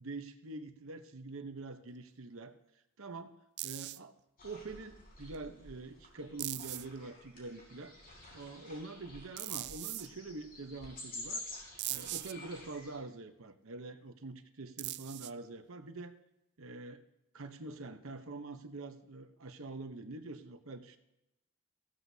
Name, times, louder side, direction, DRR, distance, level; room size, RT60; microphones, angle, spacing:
voice 1, 0.0-2.5 3.0-3.4 3.6-4.1 4.4-8.0 8.3-11.4 11.9-16.1 16.6-17.0 17.3-21.0, right 3 dB, 65° right, 8 dB, 1.0 m, -45 dB
sound 1, 3.6-4.0 5.3-5.4 6.4-7.0 9.4-10.1 11.8-12.3 14.8-15.5, right 17 dB, 50° right, 0.3 m, -40 dB
sound 2, 4.4-13.0, left 2 dB, 45° left, 4.3 m, -50 dB
15.5 x 14.0 x 2.8 m, 0.88 s
head